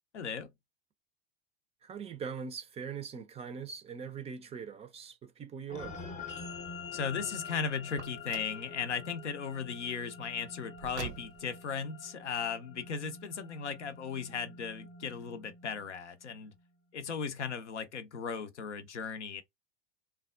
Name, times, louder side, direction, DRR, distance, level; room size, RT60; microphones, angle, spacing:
voice 1, 0.1-0.5 6.9-16.5 16.9-19.4, left 6 dB, 85° left, 0.6 m, -37 dB
voice 2, 1.8-6.0, right 6 dB, 20° right, 0.4 m, -41 dB
sound 1, 5.7-16.3, left 4 dB, 20° left, 0.6 m, -47 dB
Car, 7.9-8.6 10.7-11.6, right 7 dB, 80° right, 0.6 m, -44 dB
3.3 x 2.2 x 2.3 m
figure-of-eight pair, 80°, 34 cm